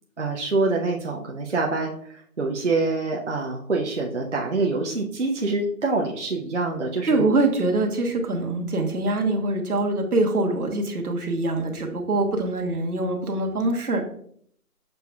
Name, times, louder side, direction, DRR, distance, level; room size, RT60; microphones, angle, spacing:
voice 1, 0.2-7.2, right 3 dB, 50° right, -1 dB, 0.5 m, -26 dB
voice 2, 7.1-14.0, right 2 dB, 75° right, 2 dB, 1.1 m, -24 dB
6.7 x 3.4 x 2.2 m, 0.62 s
figure-of-eight pair, 175°, 46 cm